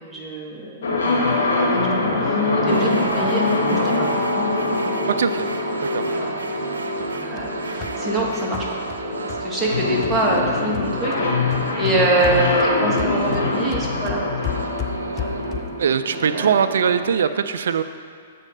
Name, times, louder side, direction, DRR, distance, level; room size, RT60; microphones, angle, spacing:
voice 1, 0.0-0.8 1.0-1.1 1.4-4.1 6.1-6.3 7.0-8.8 9.4-14.2 14.5-14.7 15.2-15.3 16.1-16.6, right 1 dB, 10° right, -5 dB, 1.7 m, -25 dB
sound 1, 0.8-16.6, left 2 dB, 65° left, 1.9 m, -24 dB
sound 2, 2.7-17.1, right 2 dB, 85° right, 0.7 m, -31 dB
voice 2, 5.2-5.5 5.8-6.0 15.8-17.8, right 7 dB, 70° right, 10 dB, 0.3 m, -21 dB
sound 3, 7.0-11.3 11.5-15.9, left 11 dB, 30° left, 0.4 m, -35 dB
7.5 x 4.2 x 6.5 m, 2.2 s
hypercardioid pair, 125°, 0 cm